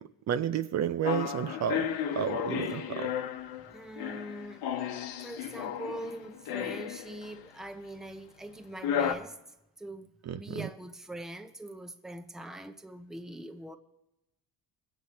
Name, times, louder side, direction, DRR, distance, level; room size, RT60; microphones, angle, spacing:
voice 1, 0.3-1.9 2.2-3.1 10.3-10.4, right 8 dB, 45° right, 0.6 m, -30 dB
sound 1, 1.0-7.4 8.8-9.1, left 9 dB, 85° left, 1.1 m, -34 dB
voice 2, 3.7-4.7 5.2-13.8, right 1 dB, ahead, 0.7 m, -43 dB
21.5 x 8.3 x 4.2 m
cardioid pair, 120°, 36 cm